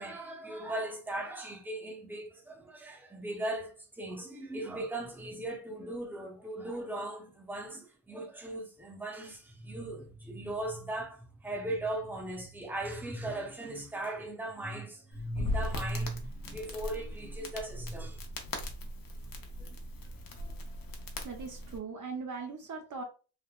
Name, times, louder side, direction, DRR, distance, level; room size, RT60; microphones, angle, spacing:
voice 1, 0.0-18.2 19.2-19.7 20.4-20.5, right 1 dB, 5° right, 0.7 m, -38 dB
Crackle, 15.1-21.8, left 1 dB, 60° left, 0.7 m, -39 dB
voice 2, 21.2-23.0, right 4 dB, 50° right, 0.6 m, -39 dB
3.4 x 2.0 x 2.3 m
cardioid pair, 95°, 39 cm